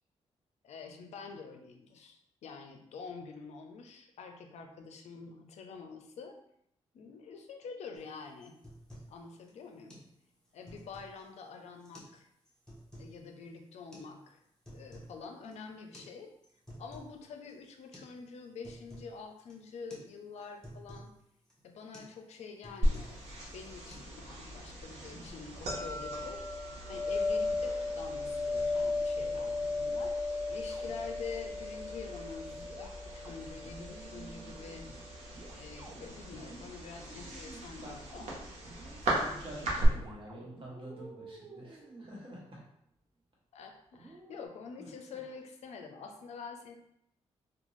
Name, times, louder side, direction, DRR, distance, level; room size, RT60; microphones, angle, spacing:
voice 1, 0.6-6.4 6.9-8.6 9.1-10.0 10.5-12.3 13.0-14.4 14.7-16.3 16.8-21.1 21.6-23.2 23.5-26.4 26.9-32.5 32.8-34.9 35.5-38.3 43.5-46.8, left 5 dB, 75° left, 4 dB, 0.4 m, -47 dB
sound 1, 8.0-8.1 8.4-9.2 9.5-9.6 9.9-10.1 10.5-11.2 11.8-12.2 12.5-13.1 13.9-14.1 14.5-15.2 15.4-15.6 15.9-16.1 16.4-17.2 17.5-17.6 17.9-18.2 18.4-19.1 19.5-19.7 19.9-20.1 20.4-21.1 21.5-21.7 21.9-22.2 22.4-23.3 23.6-24.0, equal, 5° left, 0.7 m, -51 dB
sound 2, 22.8-39.9, left 1 dB, 80° right, 0.8 m, -36 dB
sound 3, 30.4-31.5 32.5-42.7 43.9-44.5, right 3 dB, 30° right, 0.4 m, -53 dB
voice 2, 38.9-42.6 44.8-45.2, right 1 dB, 50° right, -4 dB, 1.1 m, -47 dB
2.5 x 2.2 x 3.0 m, 0.75 s
cardioid pair, 105°, 11 cm